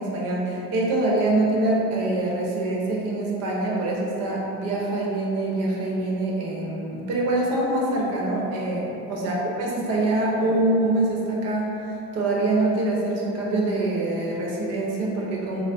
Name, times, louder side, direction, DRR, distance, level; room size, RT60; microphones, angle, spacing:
voice 1, 0.0-11.7 12.1-15.6, right 2 dB, 45° right, -3 dB, 0.8 m, -24 dB
5.7 x 2.0 x 3.8 m, 3.0 s
cardioid pair, 175°, 34 cm